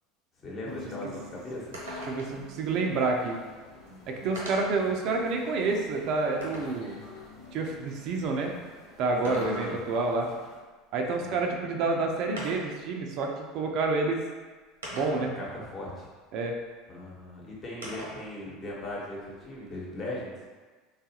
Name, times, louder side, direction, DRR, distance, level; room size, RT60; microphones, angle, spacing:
voice 1, 0.4-1.8 9.2-9.8 11.1-11.4 15.1-16.1 16.9-20.3, left 1 dB, 35° left, -5 dB, 1.1 m, -38 dB
sound 1, 0.6-10.6, left 3 dB, 70° left, 0.9 m, -48 dB
sound 2, 1.7-2.5 3.5-3.6 4.4-4.8 5.4-6.8 9.0-10.0 11.5-11.6 12.4-12.8 13.8-13.9 14.8-15.4 17.8-18.3 18.7-19.8, right 1 dB, 85° right, 0.8 m, -41 dB
voice 2, 2.1-3.4 4.1-7.0 7.5-8.6 9.0-10.3 10.9-14.2 14.9-15.3 16.3-16.6, right 3 dB, 55° right, 2 dB, 0.4 m, -28 dB
3.3 x 2.4 x 2.8 m, 1.4 s
hypercardioid pair, 80°, 0 cm